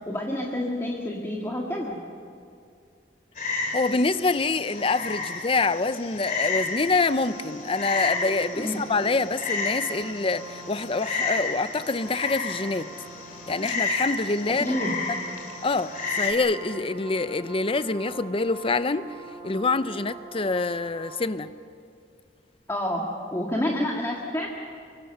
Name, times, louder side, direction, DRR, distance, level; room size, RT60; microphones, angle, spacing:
voice 1, 0.1-2.0 8.6-8.9 14.6-15.0 22.7-23.0 23.3-24.5, left 1 dB, 15° left, 1.8 m, -28 dB
Frog, 3.4-16.3, left 4 dB, 50° left, 2.9 m, -32 dB
voice 2, 3.7-12.9 13.5-14.8 15.6-19.1 19.4-21.5, left 3 dB, 30° left, 0.6 m, -26 dB
sound 1, 7.0-21.3, right 3 dB, 25° right, 2.9 m, -44 dB
24.5 x 24.0 x 6.7 m
head